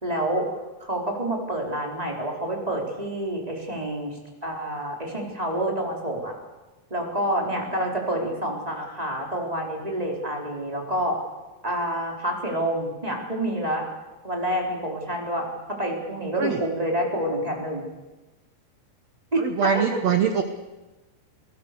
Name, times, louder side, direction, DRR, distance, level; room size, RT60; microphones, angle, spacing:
voice 1, 0.0-0.5 0.8-4.2 4.4-6.3 6.9-11.2 11.6-13.8 14.2-17.8 19.3-19.4, right 1 dB, 10° right, 0 dB, 3.9 m, -28 dB
voice 2, 19.4-20.4, right 7 dB, 90° right, 6 dB, 1.4 m, -23 dB
28.0 x 18.5 x 6.9 m, 1.1 s
omnidirectional pair, 4.8 m